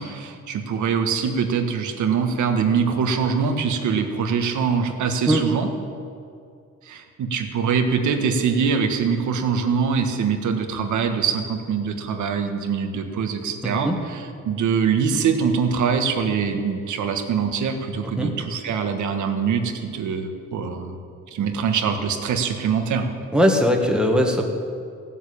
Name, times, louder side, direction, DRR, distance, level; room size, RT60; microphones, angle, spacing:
voice 1, 0.0-5.7 6.8-21.0 21.3-23.1, right 6 dB, 80° right, 5 dB, 1.6 m, -23 dB
voice 2, 13.6-14.0 18.2-18.3 23.3-24.6, equal, 5° right, 2 dB, 1.6 m, -20 dB
16.0 x 7.5 x 8.6 m, 2.4 s
cardioid pair, 120°, 29 cm